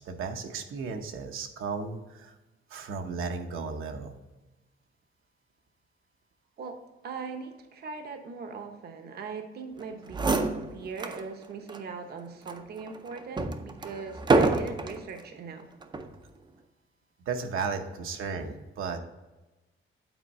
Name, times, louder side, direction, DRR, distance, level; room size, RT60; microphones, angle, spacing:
voice 1, 0.0-2.3 2.7-4.1 17.3-19.0, right 5 dB, 80° right, 4 dB, 0.9 m, -34 dB
voice 2, 7.0-15.7, right 5 dB, 50° right, 5 dB, 0.8 m, -40 dB
sound 1, 9.8-9.9 10.1-11.2 11.7-11.8 12.5-15.0 15.8-16.2, right 3 dB, 20° right, 0.5 m, -27 dB
9.0 x 4.4 x 4.1 m, 1.1 s
wide cardioid pair, 165°, 21 cm